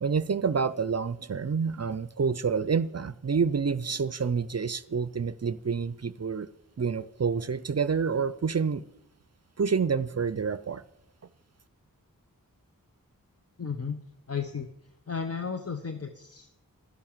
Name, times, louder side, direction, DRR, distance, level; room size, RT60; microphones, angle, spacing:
voice 1, 0.0-6.5 6.8-8.8 9.6-10.8, right 5 dB, 45° right, 17 dB, 0.5 m, -28 dB
voice 2, 13.6-14.0 14.3-14.7 15.1-16.6, left 6 dB, 45° left, 7 dB, 0.9 m, -34 dB
11.5 x 10.5 x 7.3 m, 0.83 s
wide cardioid pair, 40°, 35 cm